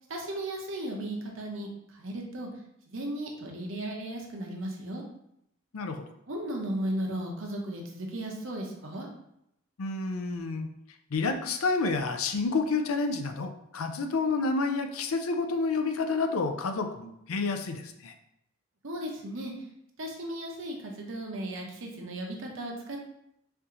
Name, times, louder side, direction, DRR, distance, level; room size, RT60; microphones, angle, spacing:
voice 1, 0.1-2.5 2.9-5.0 6.3-9.1 18.8-19.5 20.0-23.0, right 1 dB, 65° right, 0 dB, 0.9 m, -35 dB
voice 2, 5.7-6.1 9.8-10.7 11.1-18.1, left 3 dB, 85° left, 6 dB, 0.5 m, -29 dB
4.4 x 2.7 x 3.8 m, 0.78 s
head